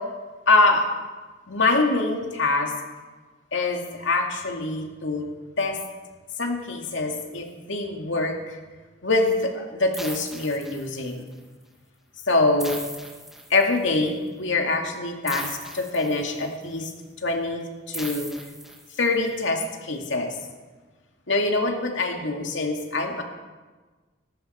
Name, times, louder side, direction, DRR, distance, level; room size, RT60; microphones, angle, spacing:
voice 1, 0.5-0.9 1.5-2.7 3.5-5.2 5.6-5.8 6.4-8.6 9.0-11.3 12.3-12.8 13.5-16.9 17.2-18.3 19.0-20.3 21.3-23.2, left 2 dB, 80° left, 2 dB, 2.3 m, -24 dB
sound 1, 9.9-11.3 12.6-14.0 15.3-16.6 17.9-19.3, right 1 dB, ahead, 1.2 m, -38 dB
19.0 x 14.0 x 4.4 m, 1.3 s
head